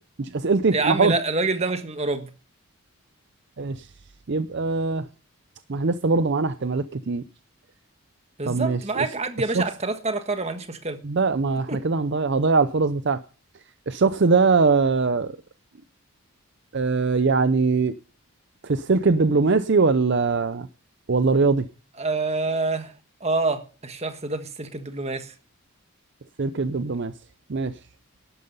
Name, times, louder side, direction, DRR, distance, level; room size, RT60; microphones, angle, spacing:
voice 1, 0.2-1.1 3.6-3.8 4.3-5.0 5.7-7.2 8.4-9.0 9.5-9.6 11.0-13.2 13.9-15.3 16.7-17.9 18.7-20.7 21.1-21.6 26.4-27.1 27.5-27.7, right 4 dB, 50° right, 0.6 m, -21 dB
voice 2, 0.7-2.3 8.4-11.0 11.7-11.8 22.0-22.9 23.2-25.3, right 3 dB, 30° right, 1.4 m, -27 dB
12.0 x 9.6 x 5.5 m
head